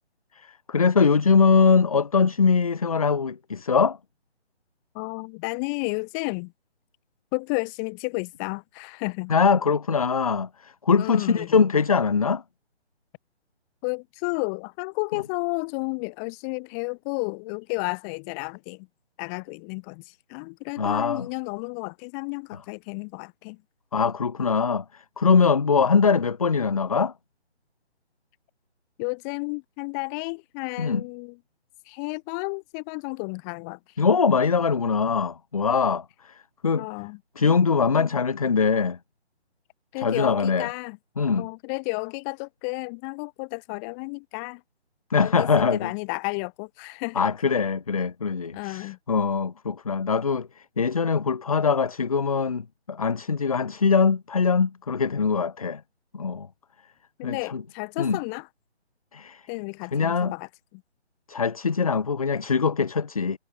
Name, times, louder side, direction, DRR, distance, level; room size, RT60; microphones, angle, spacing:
voice 1, 0.4-4.0 9.3-12.4 20.8-21.3 23.9-27.1 30.8-31.0 34.0-36.9 37.4-39.0 40.0-40.7 41.2-41.5 45.1-45.9 47.2-55.8 56.1-56.5 57.2-57.6 58.0-58.2 59.1-59.4 59.9-60.3 61.3-63.4, left 5 dB, 35° left, 0.6 m, -22 dB
voice 2, 4.9-6.5 7.3-9.3 11.0-11.6 13.8-18.9 19.2-23.6 29.0-31.4 31.8-33.8 36.8-37.5 38.0-38.2 39.9-41.0 41.4-44.6 45.2-47.3 48.5-49.0 57.2-58.5 59.5-60.8, left 38 dB, 15° left, 2.8 m, -32 dB
figure-of-eight pair, 145°, 34 cm